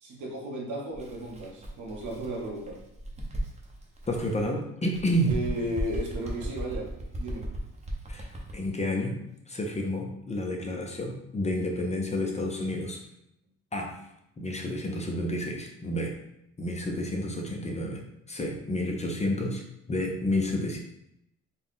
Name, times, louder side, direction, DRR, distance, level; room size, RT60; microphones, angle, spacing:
voice 1, 0.0-2.8 5.3-6.9 7.2-7.5, right 1 dB, 75° right, -2 dB, 1.3 m, -34 dB
Bird, 0.9-4.5 4.9-8.7, right 1 dB, 20° right, 0.9 m, -37 dB
voice 2, 4.1-5.3 8.1-9.2 9.5-13.0 13.7-13.9 14.4-16.1 16.6-18.0 18.3-19.6 19.9-20.8, left 1 dB, 20° left, 1 dB, 0.7 m, -30 dB
4.2 x 2.4 x 3.7 m, 0.81 s
cardioid pair, 90°, 30 cm